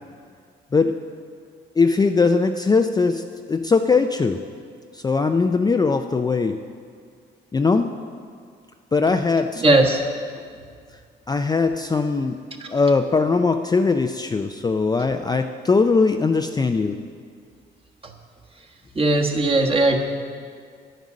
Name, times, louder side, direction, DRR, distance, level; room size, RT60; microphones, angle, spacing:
voice 1, 1.8-4.4 4.9-6.6 7.5-7.9 8.9-9.8 11.3-12.4 12.7-17.0, left 4 dB, 20° left, 6 dB, 0.4 m, -20 dB
voice 2, 9.6-10.0 12.6-12.7 18.9-20.0, right 2 dB, 30° right, 1 dB, 1.4 m, -18 dB
10.0 x 9.2 x 6.3 m, 2.1 s
cardioid pair, 90°, 20 cm